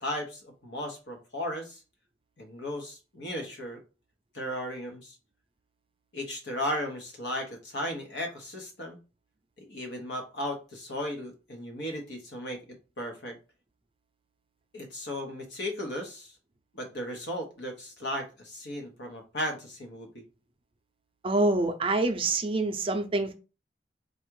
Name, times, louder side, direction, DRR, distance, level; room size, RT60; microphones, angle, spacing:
voice 1, 0.0-1.8 2.4-3.8 4.3-5.2 6.1-9.0 9.6-12.6 13.0-13.4 14.7-16.3 16.7-20.2, left 1 dB, 75° left, 1.3 m, -35 dB
voice 2, 21.2-23.3, right 2 dB, 30° right, 0.5 m, -26 dB
4.1 x 2.5 x 4.7 m
head